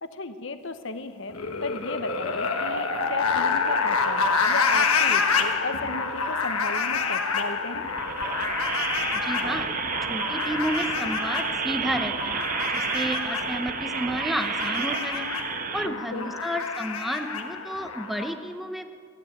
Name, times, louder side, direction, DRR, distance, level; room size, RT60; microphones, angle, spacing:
voice 1, 0.0-7.9 15.8-16.3, left 3 dB, 60° left, 9 dB, 0.9 m, -34 dB
sound 1, 1.3-18.3, left 5 dB, 90° left, 1.3 m, -28 dB
sound 2, 7.9-15.9, right 8 dB, 40° right, 0.4 m, -31 dB
voice 2, 9.2-9.7 10.1-12.4 12.7-15.3 15.7-18.8, equal, ahead, 6 dB, 0.8 m, -31 dB
16.0 x 9.4 x 9.2 m, 2.1 s
head